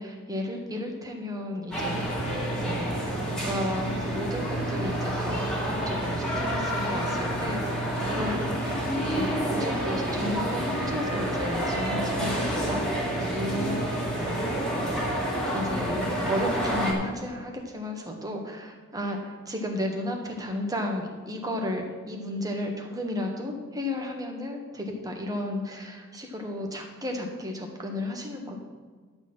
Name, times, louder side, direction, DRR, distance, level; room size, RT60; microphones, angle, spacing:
voice 1, 0.0-8.4 9.1-14.0 15.5-28.7, left 1 dB, 15° right, 2 dB, 1.4 m, -33 dB
sound 1, 1.7-16.9, right 1 dB, 5° left, 2.0 m, -28 dB
11.5 x 4.4 x 7.7 m, 1.5 s
head